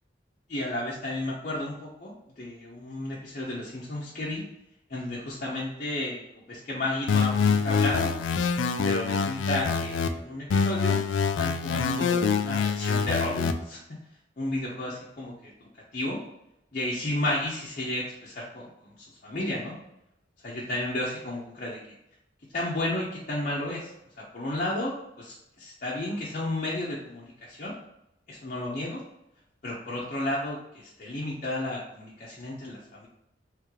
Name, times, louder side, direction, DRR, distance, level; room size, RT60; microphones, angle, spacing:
voice 1, 0.5-4.4 4.9-6.2 6.5-8.1 8.8-13.8 14.4-16.2 16.7-19.0 19.2-19.8 20.4-21.8 22.5-23.9 24.3-27.7 28.3-29.0 29.6-33.1, left 1 dB, 45° left, -7 dB, 0.7 m, -32 dB
sound 1, 7.1-10.1 10.5-13.5, left 5 dB, 85° left, 0.3 m, -25 dB
3.2 x 3.2 x 3.6 m, 0.83 s
head